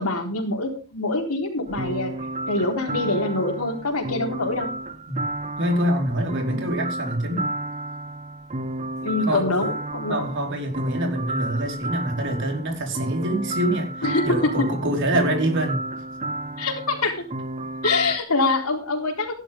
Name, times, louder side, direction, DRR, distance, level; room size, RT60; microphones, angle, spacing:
voice 1, 0.0-2.1 2.5-4.7 6.4-6.6 9.0-10.3 14.0-14.7 16.6-17.2 17.8-19.3, left 2 dB, 85° left, 2 dB, 4.1 m, -24 dB
sound 1, 1.7-18.2, right 1 dB, 30° right, 0.9 m, -32 dB
voice 2, 5.6-7.5 9.2-9.5 10.1-15.8, right 1 dB, 60° right, 2 dB, 4.8 m, -25 dB
16.0 x 11.5 x 3.7 m, 0.35 s
head